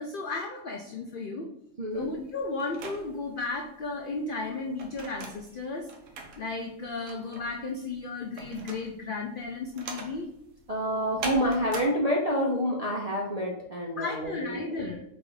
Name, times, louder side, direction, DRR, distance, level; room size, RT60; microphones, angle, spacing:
voice 1, 0.0-1.5 1.9-5.9 6.4-10.3 14.0-15.0, left 3 dB, 75° left, 2 dB, 0.4 m, -34 dB
voice 2, 1.8-2.1 10.7-14.6, equal, 55° right, -2 dB, 0.4 m, -28 dB
sound 1, 1.9-11.9, right 3 dB, 70° right, 1.0 m, -42 dB
4.0 x 2.5 x 4.7 m, 0.76 s
omnidirectional pair, 1.4 m